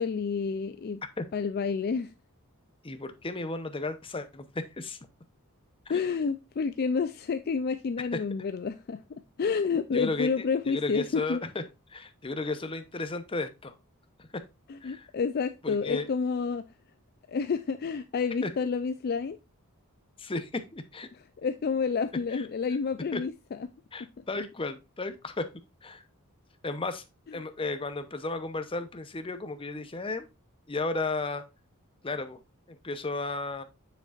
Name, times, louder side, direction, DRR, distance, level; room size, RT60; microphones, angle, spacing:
voice 1, 0.0-1.0 1.3-2.1 5.9-9.0 9.4-11.4 14.7-16.7 17.3-19.4 21.1-23.6 24.2-24.3 27.3-27.4, left 5 dB, 45° left, 0.4 m, -29 dB
voice 2, 2.8-4.5 4.8-5.0 5.9-6.0 9.9-11.6 11.9-13.7 14.8-15.1 15.6-16.1 18.4-18.5 20.2-21.1 22.3-22.4 23.1-23.2 23.9-25.4 25.8-26.0 26.6-27.0 27.3-30.3 30.7-31.4 32.0-32.4 32.7-33.6, left 3 dB, 25° left, 0.7 m, -34 dB
7.2 x 6.7 x 2.4 m
head